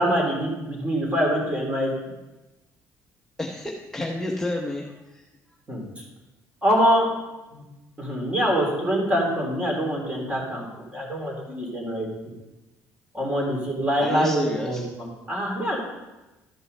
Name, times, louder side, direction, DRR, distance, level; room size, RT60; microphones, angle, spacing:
voice 1, 0.0-1.9 5.7-6.0 6.6-7.1 7.5-7.6 8.0-10.7 10.9-12.1 13.1-15.8, equal, 20° right, -1 dB, 3.2 m, -24 dB
voice 2, 3.4-4.9 14.0-14.8, left 1 dB, 10° left, -1 dB, 0.9 m, -30 dB
13.0 x 5.5 x 5.4 m, 1.1 s
cardioid pair, 130°, 6 cm